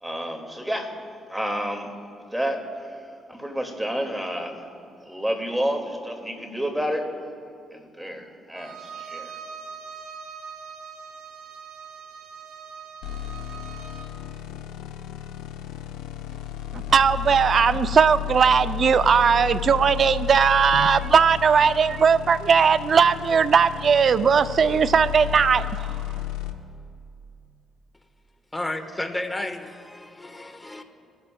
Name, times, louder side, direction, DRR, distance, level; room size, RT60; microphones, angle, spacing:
voice 1, 0.0-0.9 1.3-1.9 2.3-4.6 5.0-7.1 7.7-9.3, equal, 5° right, 3 dB, 2.1 m, -30 dB
Bowed string instrument, 8.5-14.2, right 6 dB, 80° right, 1.3 m, -41 dB
sound 1, 13.0-26.5, left 13 dB, 90° left, 0.8 m, -33 dB
voice 2, 16.7-25.9, right 6 dB, 55° right, 13 dB, 0.4 m, -19 dB
voice 3, 28.5-30.8, left 1 dB, 15° left, 7 dB, 1.3 m, -32 dB
21.5 x 13.0 x 2.3 m, 2.4 s
supercardioid pair, 65°, 0 cm